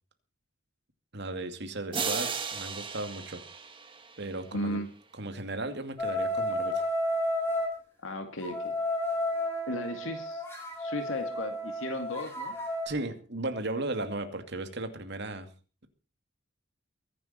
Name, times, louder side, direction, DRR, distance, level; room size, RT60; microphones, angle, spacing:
voice 1, 1.1-3.4 4.2-4.8 5.2-6.8 12.9-15.5, right 2 dB, 55° right, 7 dB, 2.4 m, -36 dB
sound 1, 1.9-4.6, right 5 dB, 25° right, 1.8 m, -35 dB
voice 2, 4.5-4.9 8.0-8.7 9.7-10.4 10.8-12.5, left 1 dB, 75° left, 5 dB, 2.2 m, -35 dB
sound 2, 6.0-7.7 8.4-12.9, left 1 dB, 10° left, 5.5 m, -32 dB
23.0 x 11.0 x 4.4 m, 0.35 s
head